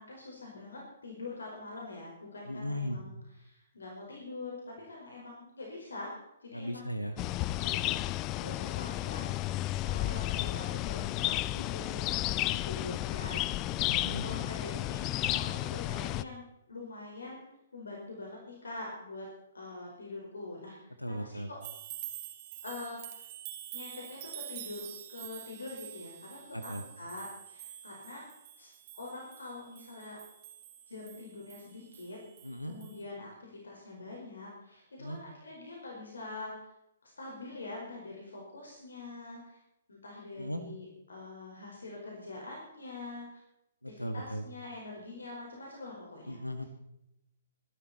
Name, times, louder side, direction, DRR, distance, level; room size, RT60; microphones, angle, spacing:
voice 1, 0.0-3.2 3.4-6.9 7.5-12.1 12.4-13.7 14.2-17.5 17.7-19.2 19.5-21.6 22.6-23.2 23.7-28.3 28.6-28.7 28.9-30.2 30.9-32.2 32.7-36.6 37.0-39.6 39.9-43.4 43.9-46.4, left 2 dB, 70° left, -2 dB, 5.0 m, -44 dB
voice 2, 2.5-3.0 6.5-7.2 13.8-14.3 21.0-21.5 26.5-26.8 32.4-32.7 35.0-35.2 40.3-40.6 43.8-44.4 46.3-46.6, equal, 90° left, 9 dB, 1.7 m, -37 dB
sound 1, 7.2-16.2, left 16 dB, 25° left, 0.4 m, -32 dB
sound 2, 21.6-32.6 32.8-33.0, right 12 dB, 40° right, 2.6 m, -47 dB
23.5 x 12.0 x 4.3 m, 0.83 s
figure-of-eight pair, 120°, 0 cm